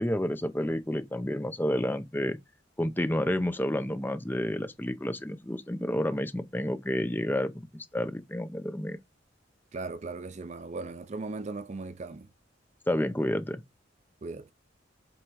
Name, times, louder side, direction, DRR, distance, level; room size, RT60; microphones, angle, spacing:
voice 1, 0.0-2.4 2.8-9.0 12.9-13.6, left 1 dB, 10° left, 0.7 m, -30 dB
voice 2, 9.7-12.3 14.2-14.5, right 3 dB, 35° right, 0.5 m, -38 dB
7.9 x 3.8 x 4.6 m
head